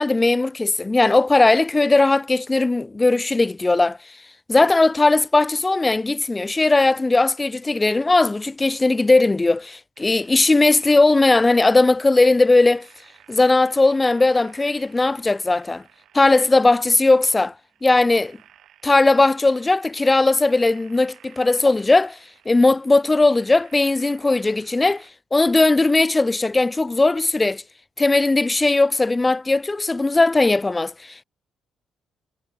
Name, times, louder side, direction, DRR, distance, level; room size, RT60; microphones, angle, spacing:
voice 1, 0.0-4.0 4.5-12.9 13.3-15.8 16.1-17.5 17.8-18.4 18.8-22.2 22.5-25.0 25.3-27.6 28.0-31.2, left 2 dB, 20° left, 0.5 m, -18 dB
sound 1, 10.0-25.1, right 11 dB, 70° right, 7.0 m, -54 dB
cardioid pair, 90°, 0 cm